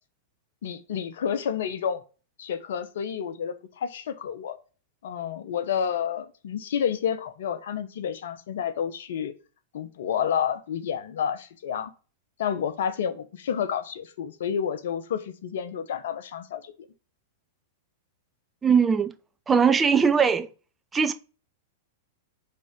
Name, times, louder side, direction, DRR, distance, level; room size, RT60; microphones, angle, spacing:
voice 1, 0.6-2.0 2.4-4.6 5.0-9.3 9.7-11.9 12.4-16.7, left 8 dB, 70° left, 0.9 m, -30 dB
voice 2, 18.6-19.1 19.5-20.5 20.9-21.1, right 6 dB, 15° right, 0.7 m, -20 dB
5.4 x 3.8 x 5.7 m
hypercardioid pair, 110°, 0 cm